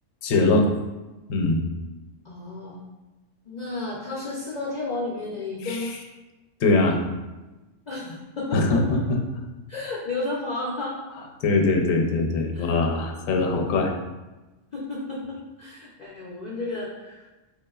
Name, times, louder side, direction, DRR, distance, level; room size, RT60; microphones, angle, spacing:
voice 1, 0.2-0.7 1.3-1.6 5.7-5.8 6.6-7.0 8.5-8.8 11.4-13.9, left 3 dB, 80° left, 2 dB, 1.0 m, -21 dB
voice 2, 2.2-2.8 3.5-6.0 7.9-9.1 9.7-11.0 12.5-12.7 14.7-17.2, left 2 dB, 50° left, -4 dB, 0.5 m, -32 dB
4.4 x 3.5 x 2.3 m, 1.1 s
omnidirectional pair, 1.4 m